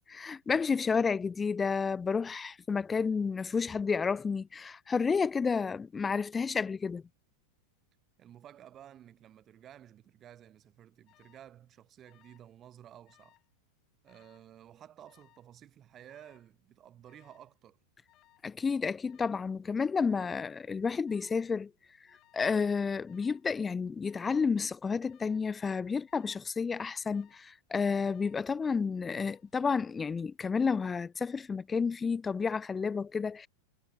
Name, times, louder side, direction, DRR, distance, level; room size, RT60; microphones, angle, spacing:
voice 1, 0.1-7.0 18.4-21.7 22.3-33.5, left 5 dB, 15° left, 0.6 m, -31 dB
voice 2, 8.2-13.3 14.0-17.8, right 10 dB, 30° right, 2.7 m, -54 dB
Alarm, 11.1-11.5 12.0-12.5 12.8-13.5 14.1-14.5 15.1-15.5 16.1-16.5 17.1-17.5 18.1-18.5 19.1-19.5 20.1-20.5 21.1-21.5 22.1-22.5 23.1-23.5 24.1-24.5 25.1-25.5 26.1-26.5 27.1-27.5 28.1-28.6 29.1-29.5, left 16 dB, 35° left, 4.7 m, -66 dB
figure-of-eight pair, 90°, 0 cm